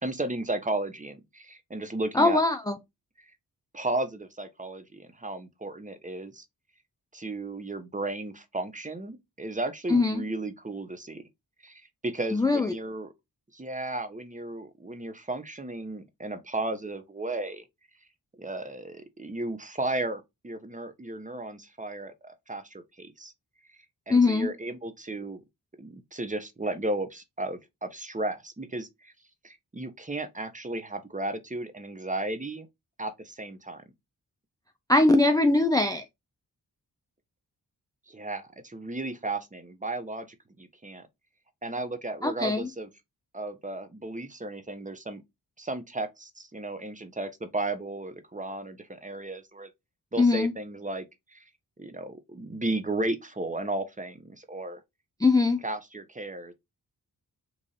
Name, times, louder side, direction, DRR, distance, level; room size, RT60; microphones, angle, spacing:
voice 1, 0.0-2.4 3.7-6.4 7.1-11.3 11.6-13.1 13.5-17.7 18.4-23.3 24.1-25.4 25.8-29.1 29.4-32.7 33.0-33.8 38.1-40.3 40.6-41.0 41.6-42.9 43.3-45.2 45.6-49.7 50.1-51.0 51.3-51.4 51.8-54.8 55.6-56.5, right 2 dB, 20° right, 0.8 m, -34 dB
voice 2, 2.1-2.8 9.9-10.2 12.3-12.7 24.1-24.5 34.9-36.0 42.2-42.7 50.2-50.5 55.2-55.6, left 3 dB, 10° left, 0.4 m, -22 dB
3.1 x 2.5 x 3.9 m
cardioid pair, 45°, 39 cm